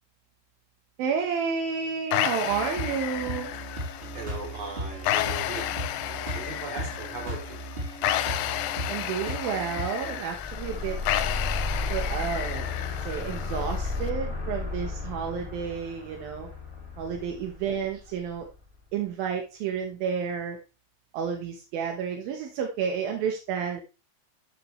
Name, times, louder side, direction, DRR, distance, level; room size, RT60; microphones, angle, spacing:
voice 1, 1.0-3.5 8.9-11.0 11.9-12.7 13.0-16.5 17.0-18.5 18.9-20.6 21.1-23.8, right 7 dB, 80° right, 3 dB, 3.0 m, -31 dB
sound 1, 2.1-14.1, left 13 dB, 80° left, 2.3 m, -32 dB
sound 2, 2.5-10.2, right 1 dB, 15° right, 3.4 m, -37 dB
voice 2, 4.1-5.7 6.0-7.6 17.1-17.4, right 3 dB, 45° right, 0 dB, 4.6 m, -39 dB
sound 3, 10.2-18.6, left 3 dB, 10° left, 2.3 m, -33 dB
12.5 x 8.0 x 3.2 m, 0.32 s
omnidirectional pair, 4.2 m